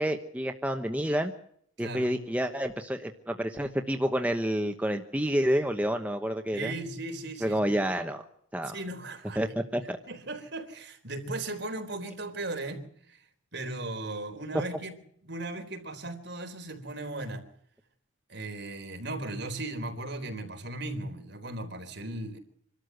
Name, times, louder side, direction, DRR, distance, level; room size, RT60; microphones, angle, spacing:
voice 1, 0.0-1.3 1.8-6.7 7.4-8.2 8.5-8.7 9.4-10.0, equal, 5° right, 1.0 m, -29 dB
voice 2, 1.8-2.1 6.5-7.7 8.6-9.5 10.1-13.2 13.5-14.9 15.2-17.4 18.3-22.4, right 2 dB, 55° right, 3.8 m, -37 dB
26.5 x 13.0 x 7.9 m
head